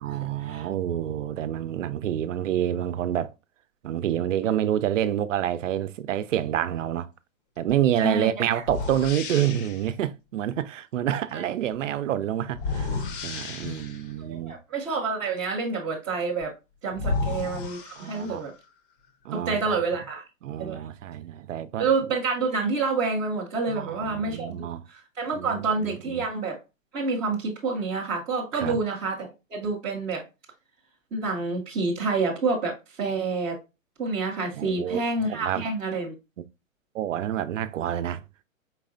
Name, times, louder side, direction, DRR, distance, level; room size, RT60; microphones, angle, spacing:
voice 1, 0.0-3.3 3.8-7.1 7.6-14.6 17.0-17.3 18.0-18.4 19.2-20.0 20.4-21.9 23.7-24.8 25.3-26.2 28.5-28.8 34.5-35.0 35.3-35.7 36.9-38.2, right 11 dB, 65° right, 0.6 m, -28 dB
sound 1, 7.7-7.9 8.6-9.9 12.5-14.1 16.4-16.5 16.9-18.6, left 4 dB, 40° left, 0.7 m, -32 dB
voice 2, 14.3-16.5 16.8-18.5 19.3-20.2 20.6-20.8 21.8-26.6 26.9-30.2 31.1-33.6 34.0-36.1, right 4 dB, 10° right, 0.4 m, -28 dB
4.7 x 3.2 x 2.5 m
hypercardioid pair, 140°, 40 cm